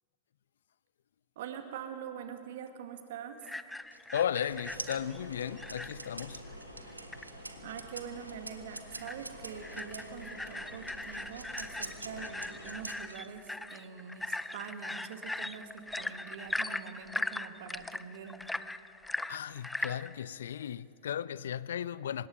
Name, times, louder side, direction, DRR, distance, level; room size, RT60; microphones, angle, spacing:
voice 1, 1.4-3.4 7.4-18.5, right 7 dB, 55° right, 1.9 m, -44 dB
sound 1, 3.4-6.2 6.5-6.6 6.9-7.2 7.7-7.8 8.2-8.3 8.8-9.2 9.5-20.1, left 2 dB, 5° left, 0.5 m, -39 dB
sound 2, 3.9-10.1 10.9-13.5, right 2 dB, 85° right, 1.1 m, -45 dB
voice 2, 4.1-6.5 12.0-12.3 19.3-22.3, left 9 dB, 65° left, 0.5 m, -35 dB
sound 3, 4.4-12.8, equal, 90° left, 2.4 m, -49 dB
25.0 x 20.5 x 5.3 m
figure-of-eight pair, 90°, 0 cm